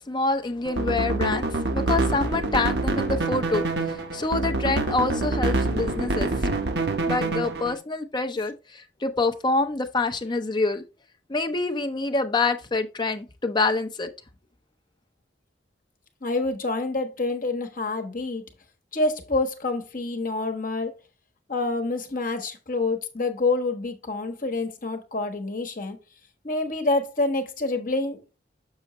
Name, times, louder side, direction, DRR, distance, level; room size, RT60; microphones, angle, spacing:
voice 1, 0.1-6.3 7.1-10.8 11.3-14.1, left 3 dB, 25° left, 0.7 m, -26 dB
sound 1, 0.6-7.7, right 2 dB, 60° right, 0.9 m, -26 dB
voice 2, 16.2-18.4 18.9-20.9 21.5-26.0 26.4-28.2, left 2 dB, 50° left, 1.2 m, -27 dB
6.4 x 6.2 x 3.1 m
head